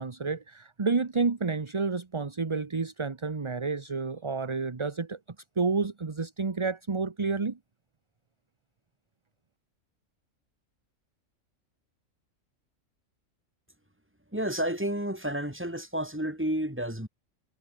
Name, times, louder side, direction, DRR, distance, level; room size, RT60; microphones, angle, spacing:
voice 1, 0.0-5.2 5.6-7.6, right 4 dB, 25° right, 0.9 m, -30 dB
voice 2, 14.3-17.1, right 1 dB, 10° right, 3.3 m, -31 dB
omnidirectional pair, 1.4 m